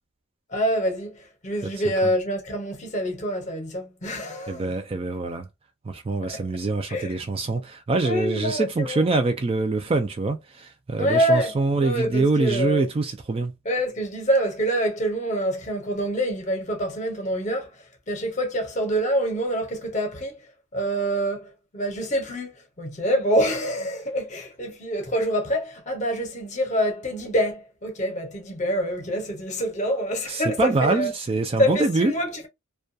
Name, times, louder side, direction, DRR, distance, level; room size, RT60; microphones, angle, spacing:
voice 1, 0.5-4.7 6.2-6.4 6.9-7.2 8.0-9.1 11.0-12.9 13.6-22.5 22.8-31.1 31.6-32.5, equal, 35° left, 0.8 m, -26 dB
voice 2, 4.5-5.5 5.8-13.5 30.3-32.1, right 3 dB, 30° right, 0.3 m, -24 dB
2.2 x 2.2 x 2.6 m
head